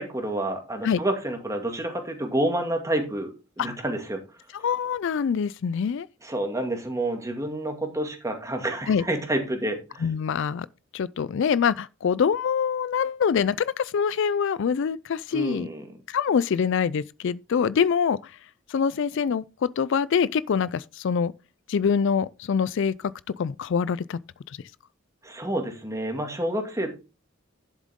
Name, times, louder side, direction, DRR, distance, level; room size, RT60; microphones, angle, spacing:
voice 1, 0.0-4.2 6.2-10.1 15.3-15.9 25.2-26.9, right 1 dB, 15° right, 2.2 m, -29 dB
voice 2, 4.5-6.1 8.9-9.0 10.0-10.7 10.9-15.7 16.1-18.4 18.7-21.3 21.7-23.1 23.4-24.2 24.5-24.6, left 6 dB, 65° left, 0.4 m, -25 dB
11.0 x 7.3 x 3.6 m
head